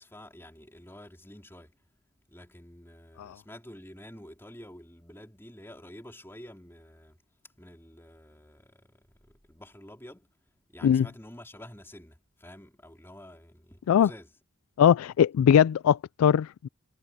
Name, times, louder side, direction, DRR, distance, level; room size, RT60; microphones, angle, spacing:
voice 1, 0.0-1.7 2.3-7.2 7.4-10.3 10.7-14.3, left 1 dB, 10° left, 4.1 m, -49 dB
voice 2, 14.8-16.7, left 8 dB, 90° left, 0.3 m, -21 dB
head